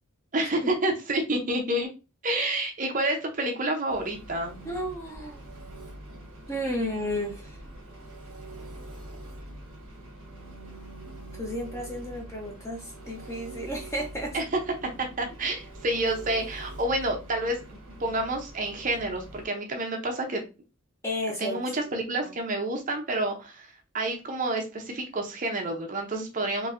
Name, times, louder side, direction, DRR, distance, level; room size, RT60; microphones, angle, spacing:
voice 1, 0.3-1.9 2.2-4.5 14.3-14.4 15.2-20.4 21.4-26.7, right 1 dB, 35° right, 3 dB, 0.7 m, -29 dB
Engine, 3.9-19.4, right 1 dB, 60° right, 1.2 m, -44 dB
voice 2, 4.6-5.4 6.5-7.6 11.3-14.4 21.0-21.6 22.2-22.3, equal, 15° left, 1 dB, 0.8 m, -33 dB
4.5 x 2.6 x 2.6 m, 0.29 s
head